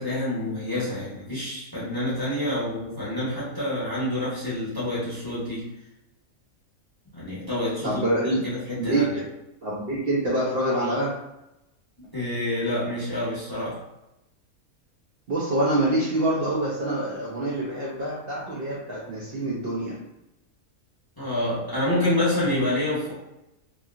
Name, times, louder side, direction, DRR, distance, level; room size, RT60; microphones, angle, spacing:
voice 1, 0.0-5.7 7.1-9.1 12.0-13.8 21.2-23.1, left 1 dB, 20° left, -9 dB, 0.7 m, -28 dB
voice 2, 7.8-8.4 8.7-9.2 9.6-11.1 15.3-20.0, right 1 dB, 55° right, -6 dB, 0.7 m, -26 dB
2.8 x 2.7 x 2.4 m, 0.92 s
omnidirectional pair, 1.5 m